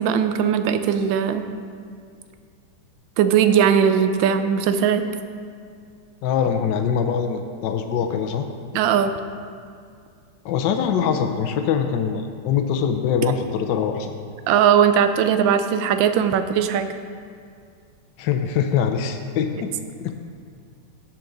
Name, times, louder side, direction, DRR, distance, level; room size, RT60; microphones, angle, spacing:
voice 1, 0.0-1.5 3.2-5.0 8.7-9.1 14.5-16.9, right 8 dB, 75° right, 9 dB, 1.3 m, -19 dB
voice 2, 6.2-8.4 10.4-14.2 18.2-19.7 20.0-20.1, left 7 dB, 70° left, 5 dB, 1.2 m, -23 dB
16.5 x 6.0 x 3.9 m, 2.3 s
omnidirectional pair, 2.2 m